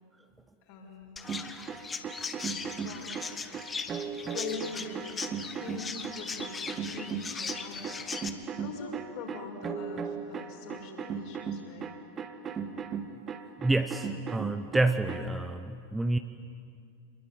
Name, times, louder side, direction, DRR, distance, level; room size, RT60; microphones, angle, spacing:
voice 1, 0.6-1.1 2.8-3.2 4.3-5.3 5.6-11.9, left 4 dB, 45° left, 1 dB, 5.8 m, -42 dB
Chirp tweet, 1.2-8.3, left 5 dB, 15° left, 1.5 m, -39 dB
sound 1, 1.2-15.3, right 6 dB, 25° right, 1.6 m, -37 dB
voice 2, 13.6-16.2, right 2 dB, 5° right, 9 dB, 0.9 m, -28 dB
27.5 x 21.5 x 9.4 m, 2.2 s
figure-of-eight pair, 90°, 0 cm